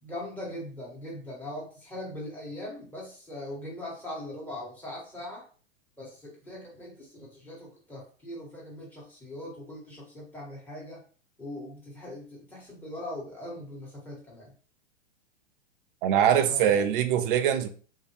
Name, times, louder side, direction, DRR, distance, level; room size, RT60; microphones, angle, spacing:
voice 1, 0.0-5.4 6.0-11.0 11.4-14.5 16.4-16.8, left 1 dB, 5° left, 1.4 m, -40 dB
voice 2, 16.0-17.7, right 9 dB, 50° right, 0.5 m, -23 dB
2.6 x 2.1 x 3.2 m
hypercardioid pair, 105°, 35 cm